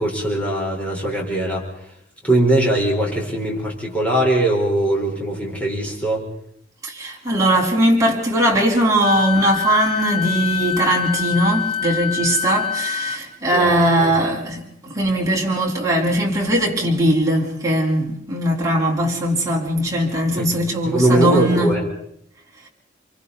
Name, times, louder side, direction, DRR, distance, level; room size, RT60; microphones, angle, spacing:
voice 1, 0.0-1.7 2.2-6.2 13.5-14.1 20.3-20.5 20.8-21.8, right 1 dB, 5° left, 4.6 m, -20 dB
voice 2, 6.8-21.7, right 1 dB, 15° right, 4.2 m, -20 dB
Wind instrument woodwind instrument, 9.0-13.2, left 9 dB, 25° left, 1.5 m, -25 dB
28.5 x 24.0 x 4.1 m
head